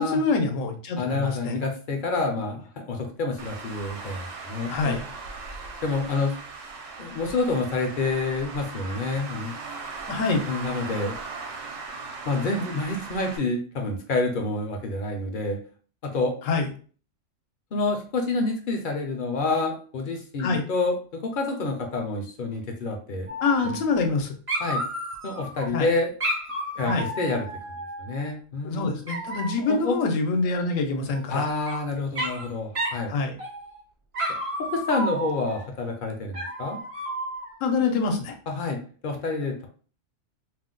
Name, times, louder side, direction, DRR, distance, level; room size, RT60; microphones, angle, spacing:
voice 1, 0.0-1.5 4.7-5.1 10.1-10.4 16.5-16.7 20.4-20.6 23.4-24.3 25.7-25.9 26.9-27.1 28.6-31.5 33.1-33.4 37.6-38.3, left 4 dB, 85° left, 4 dB, 1.0 m, -25 dB
voice 2, 1.0-5.0 5.8-6.4 7.0-9.5 10.5-11.1 12.3-15.6 16.0-16.4 17.7-23.3 23.6-23.8 24.6-24.8 25.2-26.1 26.8-27.5 28.0-29.0 29.6-29.9 31.3-33.1 34.7-36.8 38.5-39.7, left 3 dB, 55° left, 2 dB, 0.6 m, -28 dB
Traffic noise roadway noise, 3.4-13.4, right 4 dB, 70° right, 1.0 m, -38 dB
Dog, 23.3-24.2 24.5-25.7 26.2-28.3 29.1-29.7 31.1-31.8 32.1-32.5 32.7-33.0 33.4-33.8 34.1-35.6 36.3-37.6, right 1 dB, 40° right, 0.5 m, -32 dB
2.5 x 2.1 x 3.7 m, 0.41 s
omnidirectional pair, 1.4 m